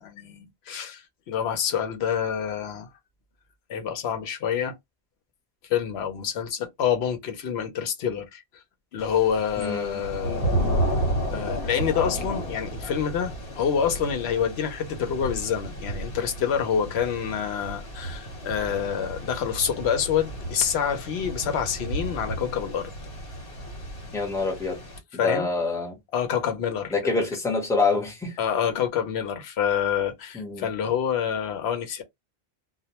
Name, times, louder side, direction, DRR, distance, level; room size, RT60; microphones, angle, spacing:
voice 1, 0.0-2.9 3.7-4.8 5.7-8.4 8.9-10.5 11.3-22.9 25.2-25.5 26.1-27.3 28.4-32.0, left 8 dB, 90° left, 0.9 m, -27 dB
Thunder / Rain, 9.0-25.0, right 1 dB, 70° left, 1.2 m, -32 dB
voice 2, 9.6-10.0 24.1-24.8 25.2-26.0 26.9-28.3 30.3-30.7, left 3 dB, 5° left, 0.7 m, -26 dB
2.2 x 2.1 x 2.8 m
omnidirectional pair, 1.0 m